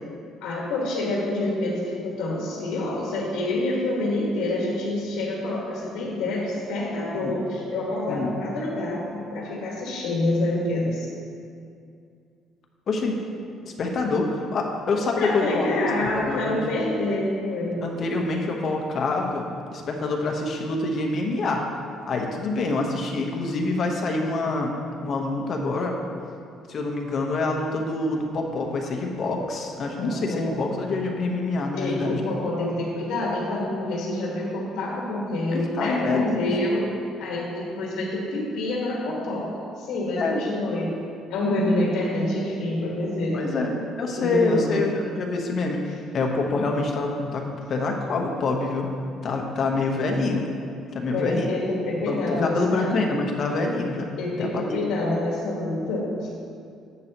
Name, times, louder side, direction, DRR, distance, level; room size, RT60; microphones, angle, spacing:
voice 1, 0.4-11.1 15.2-17.8 30.0-30.5 31.7-36.9 37.2-39.5 39.8-40.9 41.3-43.7 44.2-44.8 51.1-52.9 54.2-56.3, left 2 dB, 80° left, -5 dB, 1.7 m, -27 dB
voice 2, 13.6-15.7 16.0-16.6 17.8-19.4 19.7-21.6 22.1-24.7 25.0-26.0 26.7-32.2 35.5-36.5 40.1-40.4 43.3-48.9 49.2-50.5 50.9-51.5 52.1-54.1 54.4-54.8, left 3 dB, 40° left, 1 dB, 1.1 m, -26 dB
11.0 x 8.0 x 3.0 m, 2.4 s
cardioid pair, 145°, 0 cm